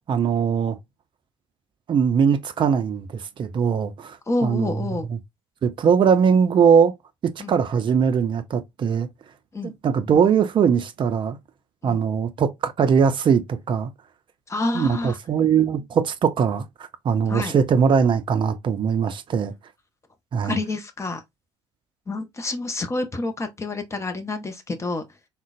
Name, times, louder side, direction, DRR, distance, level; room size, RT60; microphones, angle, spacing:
voice 1, 0.1-0.8 1.9-4.2 4.4-4.7 5.1-5.2 5.6-6.9 7.2-9.1 9.6-11.4 11.8-13.9 14.7-16.6 17.0-19.5 20.3-20.6, right 7 dB, 30° right, 0.5 m, -21 dB
voice 2, 4.3-5.1 7.4-7.5 9.5-9.7 11.8-12.0 14.5-15.2 17.3-17.5 20.4-21.2 22.1-25.0, left 2 dB, 20° left, 0.7 m, -28 dB
3.7 x 2.2 x 2.4 m
figure-of-eight pair, 55°, 16 cm